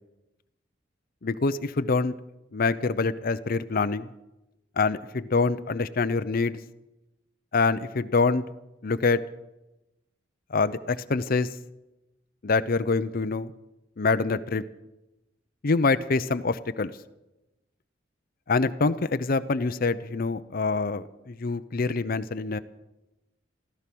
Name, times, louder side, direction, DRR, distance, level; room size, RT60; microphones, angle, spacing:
voice 1, 1.2-2.1 2.5-4.1 4.8-6.6 7.5-8.4 8.8-9.2 10.5-11.5 12.4-13.5 14.0-14.6 15.6-16.9 18.5-22.6, left 4 dB, 50° left, 12 dB, 0.6 m, -25 dB
15.0 x 14.0 x 6.1 m, 0.96 s
head